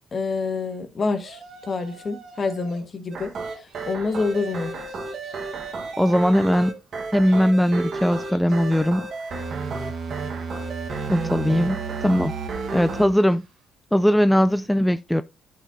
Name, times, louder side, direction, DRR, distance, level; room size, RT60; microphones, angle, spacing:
voice 1, 0.1-3.3 3.6-4.7, left 4 dB, 40° left, 1.5 m, -27 dB
Yell, 1.2-2.9 3.2-13.6, right 4 dB, 75° right, 2.9 m, -50 dB
sound 1, 3.1-13.1, right 4 dB, 55° right, 1.4 m, -31 dB
voice 2, 6.0-6.8 7.1-9.1 11.1-12.3 12.7-13.4 13.9-15.2, equal, 5° left, 0.3 m, -20 dB
11.0 x 4.7 x 2.7 m
cardioid pair, 90°, 0 cm